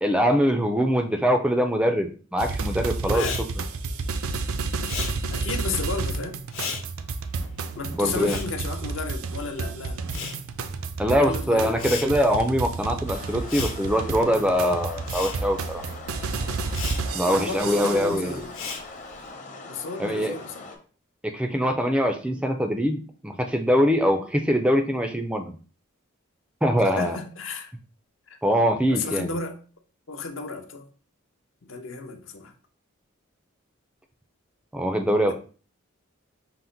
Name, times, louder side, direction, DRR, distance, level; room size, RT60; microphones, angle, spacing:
voice 1, 0.0-3.2 7.9-8.4 11.0-15.8 17.1-18.3 20.0-20.3 21.2-25.5 26.6-27.2 28.4-29.3 34.7-35.3, equal, 5° right, 0.3 m, -23 dB
sound 1, 2.4-18.3, right 4 dB, 90° right, 0.5 m, -31 dB
Respiratory sounds, 3.1-9.6 9.8-19.3, left 5 dB, 80° left, 1.0 m, -38 dB
voice 2, 3.1-3.4 5.3-6.4 7.8-10.0 11.2-11.9 17.2-18.5 19.6-20.7 26.8-27.7 28.3-28.4 28.9-29.6 30.1-30.9 31.6-32.5, left 4 dB, 65° left, 0.7 m, -33 dB
sound 2, 13.0-20.8, left 3 dB, 35° left, 0.8 m, -42 dB
5.6 x 2.1 x 3.8 m
head